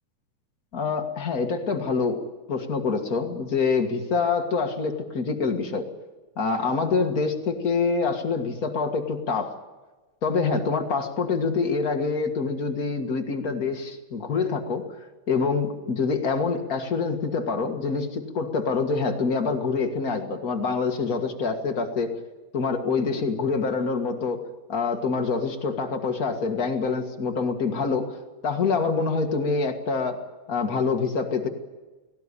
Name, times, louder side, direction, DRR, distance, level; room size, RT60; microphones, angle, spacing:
voice 1, 0.7-2.2 2.5-5.9 6.4-9.6 10.2-14.8 15.3-22.1 22.5-24.4 24.7-28.1 28.4-30.2 30.5-31.5, left 4 dB, 35° left, 5 dB, 1.6 m, -26 dB
18.5 x 17.5 x 9.9 m, 1.2 s
omnidirectional pair, 3.6 m